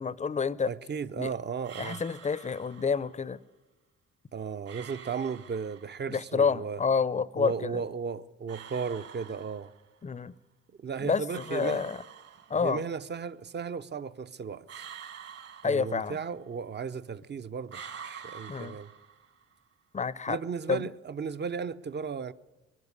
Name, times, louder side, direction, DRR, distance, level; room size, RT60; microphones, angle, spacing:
voice 1, 0.0-0.7 1.2-1.3 1.8-3.4 6.1-7.8 10.0-10.3 11.0-12.0 12.5-12.8 15.6-16.2 18.5-18.8 19.9-20.4 20.7-20.9, left 5 dB, 25° left, 0.6 m, -29 dB
voice 2, 0.7-2.0 4.3-6.8 7.4-9.7 10.8-11.8 12.6-14.9 15.6-18.9 20.3-22.3, right 6 dB, 35° right, 0.7 m, -35 dB
sound 1, 1.6-3.1 4.7-6.1 8.5-10.0 11.3-12.9 14.7-16.4 17.7-19.5, right 8 dB, 55° right, 2.1 m, -47 dB
22.0 x 12.0 x 9.7 m
cardioid pair, 90°, 30 cm